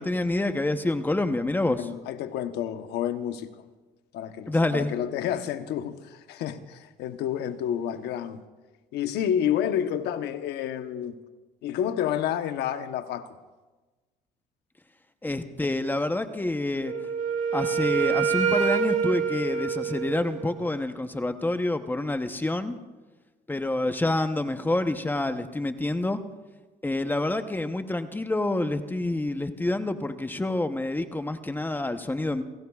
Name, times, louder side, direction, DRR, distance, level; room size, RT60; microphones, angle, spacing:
voice 1, 0.0-1.9 4.5-4.9 15.2-16.9 17.5-22.8 23.5-26.2 26.8-32.4, left 2 dB, 10° left, 0.9 m, -27 dB
voice 2, 1.7-3.7 4.1-8.4 8.9-11.2 11.6-13.4, left 10 dB, 80° left, 1.0 m, -29 dB
Wind instrument woodwind instrument, 16.8-20.7, right 6 dB, 45° right, 1.6 m, -26 dB
29.5 x 17.5 x 2.4 m
cardioid pair, 110°, 17 cm